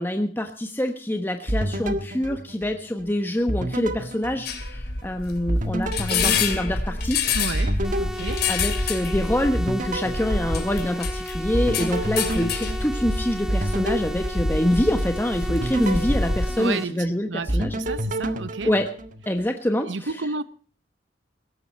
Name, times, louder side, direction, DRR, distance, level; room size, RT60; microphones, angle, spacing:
voice 1, 0.0-7.2 8.5-17.7 18.6-18.9 19.3-19.9, left 1 dB, 10° left, 1.2 m, -25 dB
sound 1, 1.5-3.1 3.5-5.1 5.5-9.1 9.5-11.1 11.5-15.0 15.5-17.1 17.5-19.4, right 1 dB, 45° right, 1.7 m, -30 dB
sound 2, 4.5-16.5, left 4 dB, 60° left, 2.7 m, -27 dB
voice 2, 7.3-8.5 16.6-18.7 19.8-20.4, right 3 dB, 90° right, 0.9 m, -31 dB
sound 3, 7.8-16.8, equal, 5° right, 0.9 m, -35 dB
17.5 x 14.0 x 4.4 m
head